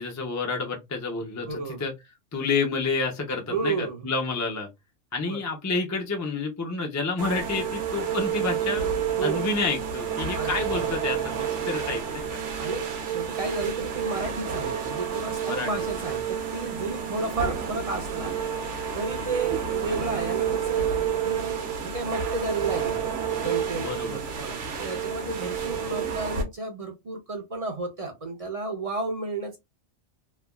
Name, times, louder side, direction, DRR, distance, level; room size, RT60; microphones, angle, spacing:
voice 1, 0.0-1.9 2.3-4.7 5.1-8.9 9.2-12.4 15.4-15.7 19.1-19.4 23.7-24.2, left 3 dB, 20° left, 0.4 m, -29 dB
voice 2, 1.5-1.8 3.5-4.1 5.3-5.4 9.2-9.5 10.3-10.8 12.6-18.3 18.9-23.0 23.4-29.6, right 3 dB, 40° right, 0.5 m, -32 dB
sound 1, 7.2-26.4, right 7 dB, 65° right, 1.1 m, -30 dB
3.2 x 2.3 x 2.2 m
omnidirectional pair, 1.4 m